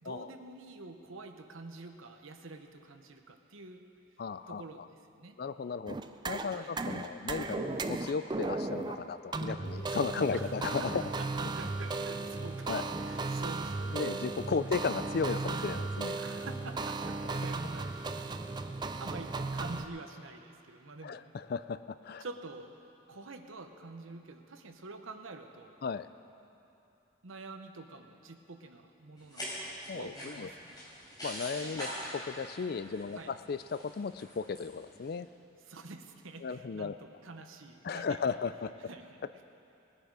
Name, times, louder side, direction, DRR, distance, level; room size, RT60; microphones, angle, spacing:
voice 1, 0.0-3.9 4.5-4.9 5.1-5.4 6.5-6.9 10.3-10.5 10.8-10.9 11.2-11.3 11.5-14.1 14.6-14.7 16.2-18.3 19.0-21.2 22.2-22.8 23.1-25.8 27.2-30.8 31.6-31.9 33.2-33.3 35.6-38.4 38.8-39.2, right 3 dB, 85° right, 6 dB, 1.0 m, -47 dB
voice 2, 4.2-4.6 5.4-6.0 6.3-11.0 12.7-12.9 13.8-16.2 21.0-22.2 25.8-26.1 29.9-30.5 31.2-31.9 32.1-35.3 36.4-36.9 37.8-38.7, left 5 dB, 50° left, 13 dB, 0.4 m, -35 dB
sound 1, 5.9-19.9, right 3 dB, 20° right, 0.4 m, -36 dB
sound 2, 29.2-35.1, equal, 20° left, 4.1 m, -44 dB
20.0 x 10.0 x 4.8 m, 2.8 s
head